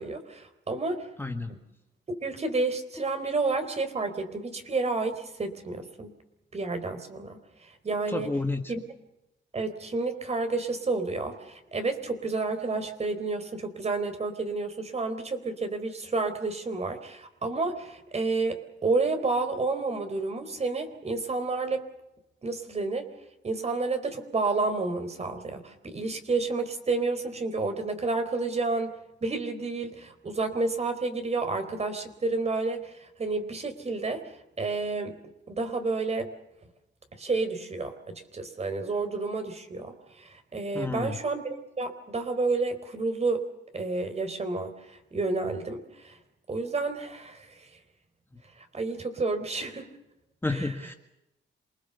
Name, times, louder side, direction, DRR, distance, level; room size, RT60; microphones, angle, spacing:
voice 1, 0.0-1.0 2.2-6.1 6.5-7.4 7.8-8.3 8.7-8.8 9.5-21.8 22.4-23.1 23.4-28.9 29.2-32.8 33.2-34.2 34.6-35.1 35.5-36.3 37.2-39.9 40.5-43.4 43.7-44.7 45.1-46.2 46.5-47.4 48.7-49.9 50.5-50.7, right 3 dB, 35° right, 8 dB, 4.1 m, -30 dB
voice 2, 1.2-1.5 8.1-8.7 40.7-41.2 50.4-50.9, left 2 dB, 10° left, 5 dB, 1.8 m, -30 dB
27.5 x 20.5 x 7.0 m, 0.90 s
cardioid pair, 90°, 20 cm